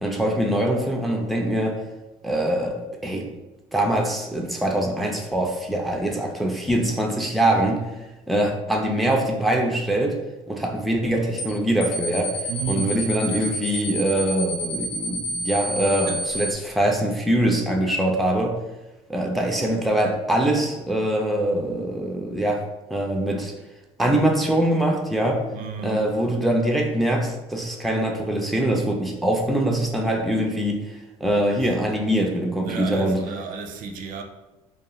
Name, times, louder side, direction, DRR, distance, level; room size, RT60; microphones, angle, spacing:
voice 1, 0.0-1.8 2.2-3.3 3.7-7.8 8.3-10.2 10.5-18.5 19.1-22.6 22.9-23.5 24.0-25.4 25.8-33.2, right 1 dB, ahead, 0.3 m, -23 dB
sound 1, 11.4-11.5 11.8-16.5, equal, 80° left, 0.5 m, -29 dB
voice 2, 12.5-13.5 16.0-16.5 25.5-26.1 31.5-32.3 32.6-34.2, right 5 dB, 70° right, 0.4 m, -34 dB
2.4 x 2.2 x 2.9 m
cardioid pair, 110°, 14 cm